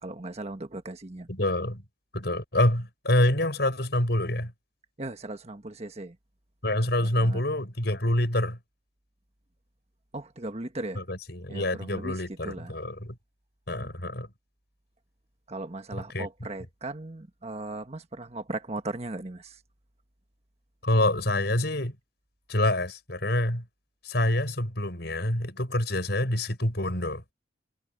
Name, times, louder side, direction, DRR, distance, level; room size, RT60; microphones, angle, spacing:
voice 1, 0.0-1.3 5.0-6.2 7.0-7.4 10.1-11.0 11.5-12.7 13.8-13.9 15.5-19.6, right 2 dB, 35° right, 1.3 m, -37 dB
voice 2, 1.3-1.8 2.1-4.5 6.6-8.6 11.0-13.2 13.7-14.3 15.9-16.3 20.8-22.0 22.5-23.6 24.0-27.2, left 1 dB, 60° left, 7.0 m, -26 dB
head